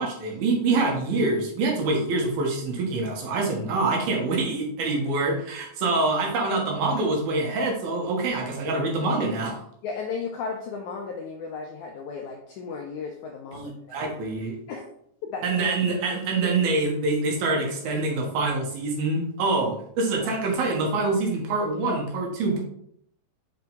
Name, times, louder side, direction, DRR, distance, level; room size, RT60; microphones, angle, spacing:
voice 1, 0.0-9.6 13.5-14.6 15.4-22.6, right 3 dB, 80° right, 0 dB, 3.2 m, -25 dB
voice 2, 9.8-14.1 14.7-14.8 15.3-15.5, left 5 dB, 80° left, 1 dB, 1.7 m, -35 dB
6.2 x 5.7 x 3.5 m, 0.70 s
omnidirectional pair, 4.3 m